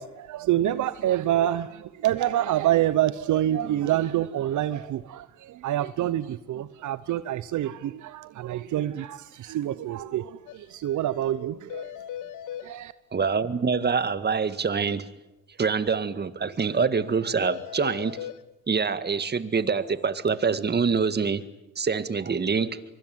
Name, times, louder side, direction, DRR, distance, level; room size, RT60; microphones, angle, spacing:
voice 1, 0.0-11.9 12.6-12.9, right 12 dB, 75° right, 1.0 m, -27 dB
sound 1, 10.5-10.6 10.8-10.9 11.2-11.3 11.7-12.7 17.4-18.4, left 10 dB, 85° left, 1.4 m, -37 dB
voice 2, 13.1-15.1 15.6-18.2 18.7-21.4 21.7-22.8, right 5 dB, 35° right, 1.8 m, -25 dB
24.5 x 24.5 x 9.4 m
cardioid pair, 90°, 30 cm